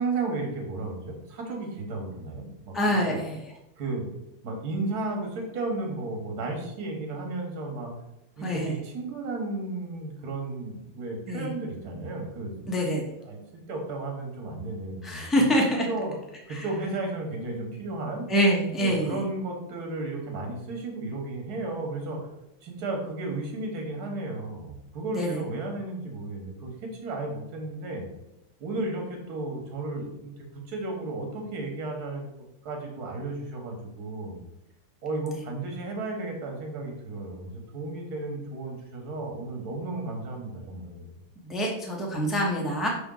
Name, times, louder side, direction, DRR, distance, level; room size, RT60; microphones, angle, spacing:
voice 1, 0.0-3.2 3.8-4.1 4.4-7.9 8.4-12.9 13.3-13.4 13.7-15.5 15.8-16.2 16.5-18.3 18.8-22.3 22.6-28.1 28.6-32.3 32.6-34.4 35.0-41.1, right 2 dB, 50° right, 1 dB, 1.7 m, -34 dB
voice 2, 2.7-3.4 8.4-8.7 11.3-11.5 12.7-13.0 15.0-15.9 16.5-16.6 18.3-19.2 25.1-25.4 41.4-42.9, equal, ahead, -1 dB, 0.4 m, -25 dB
6.1 x 4.4 x 3.8 m, 0.87 s
omnidirectional pair, 2.3 m